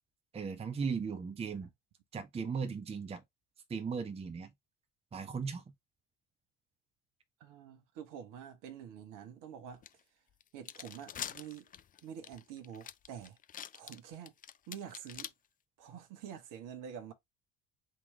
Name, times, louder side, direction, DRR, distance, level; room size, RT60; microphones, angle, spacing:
voice 1, 0.3-1.7 2.1-3.2 3.7-4.5 5.1-5.6, right 5 dB, 15° right, 0.7 m, -37 dB
voice 2, 7.4-9.8 10.5-11.7 12.0-13.4 13.7-14.3 14.7-15.3 15.8-17.1, right 8 dB, 55° right, 1.1 m, -47 dB
sound 1, 9.8-9.9 10.4-15.3, left 9 dB, 25° left, 0.4 m, -44 dB
3.8 x 2.9 x 3.3 m
figure-of-eight pair, 60°, 37 cm